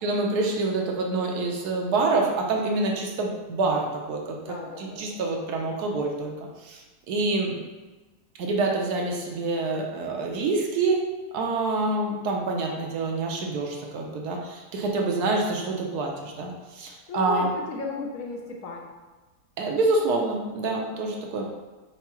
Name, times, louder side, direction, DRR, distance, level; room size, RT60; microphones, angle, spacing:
voice 1, 0.0-6.3 6.6-6.8 7.1-7.6 8.4-17.5 19.6-21.4, right 3 dB, 70° right, 0 dB, 1.1 m, -27 dB
voice 2, 4.4-5.2 16.8-18.9, left 4 dB, 65° left, 1 dB, 0.8 m, -35 dB
4.6 x 3.8 x 2.9 m, 1.2 s
omnidirectional pair, 1.8 m